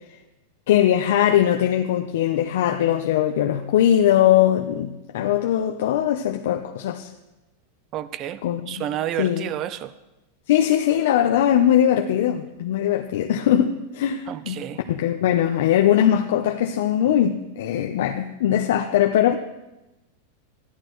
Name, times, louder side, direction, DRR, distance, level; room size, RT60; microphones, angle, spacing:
voice 1, 0.7-7.1 8.4-8.9 9.2-9.4 10.5-14.6 14.9-19.3, left 11 dB, 65° left, 0.6 m, -20 dB
voice 2, 7.9-9.9 14.3-14.8, right 12 dB, 30° right, 0.4 m, -30 dB
13.5 x 11.0 x 3.1 m
supercardioid pair, 170°, 0 cm